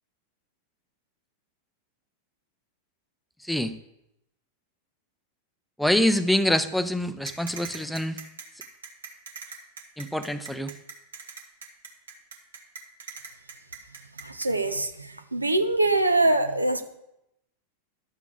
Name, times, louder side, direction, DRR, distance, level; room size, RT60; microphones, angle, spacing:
voice 1, 3.4-3.7 5.8-8.2 10.0-10.7, left 1 dB, 5° left, 12 dB, 0.5 m, -25 dB
sound 1, 7.3-14.5, right 6 dB, 65° right, 1.5 m, -41 dB
voice 2, 14.2-16.8, right 2 dB, 85° right, 9 dB, 0.8 m, -24 dB
12.0 x 7.0 x 4.8 m, 0.85 s
figure-of-eight pair, 90°, 0 cm